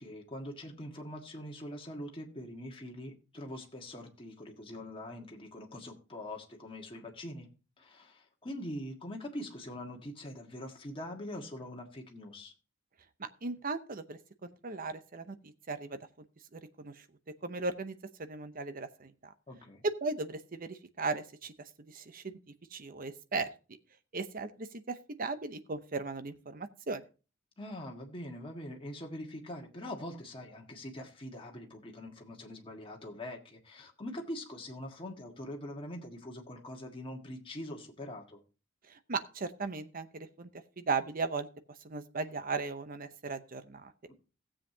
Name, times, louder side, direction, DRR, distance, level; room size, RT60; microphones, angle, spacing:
voice 1, 0.0-7.5 7.8-12.5 19.5-19.8 27.6-38.4 44.1-44.2, left 1 dB, 25° left, 1 dB, 1.6 m, -43 dB
voice 2, 13.2-16.0 16.5-16.9 17.4-19.3 19.8-21.5 21.9-22.3 22.7-23.5 24.1-27.0 39.1-40.5 40.8-41.5 41.8-43.9, right 3 dB, 45° right, 11 dB, 0.8 m, -37 dB
16.5 x 7.5 x 2.8 m, 0.33 s
head